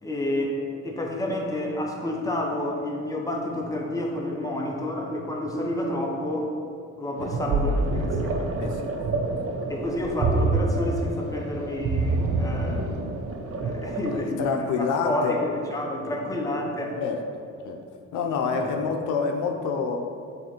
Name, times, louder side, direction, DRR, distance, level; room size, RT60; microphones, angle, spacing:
voice 1, 0.0-6.5 7.0-8.6 9.7-13.1 13.5-16.9 18.5-18.7, left 1 dB, 10° left, -1 dB, 1.0 m, -29 dB
sound 1, 7.2-14.2, right 3 dB, 50° right, 0.7 m, -27 dB
voice 2, 14.1-15.5 15.8-16.3 17.0-17.2 17.7-17.8 18.1-20.0, left 5 dB, 80° left, 3 dB, 0.6 m, -27 dB
7.3 x 3.2 x 4.4 m, 2.3 s
cardioid pair, 90°, 30 cm